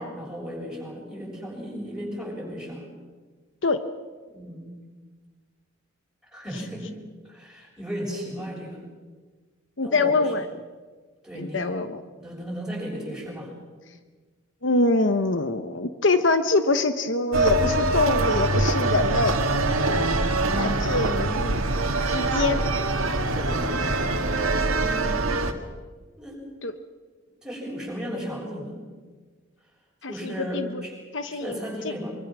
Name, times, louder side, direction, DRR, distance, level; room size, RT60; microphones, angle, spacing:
voice 1, 0.0-2.9 4.3-4.8 6.3-6.9 7.2-8.8 9.8-10.3 11.2-11.7 12.2-13.5 23.3-23.8 24.3-25.1 26.2-26.4 27.4-28.8 30.1-30.9 31.3-32.2, equal, 5° right, -3 dB, 7.0 m, -35 dB
voice 2, 9.8-10.5 11.3-12.0 14.6-19.4 19.9-20.2 20.6-21.6 22.1-22.6 26.6-26.7 30.0-30.8 31.1-31.6 31.8-31.9, left 3 dB, 60° left, 9 dB, 1.0 m, -24 dB
sound 1, 17.3-25.5, right 2 dB, 90° right, 2.0 m, -24 dB
24.5 x 24.0 x 6.1 m, 1.4 s
head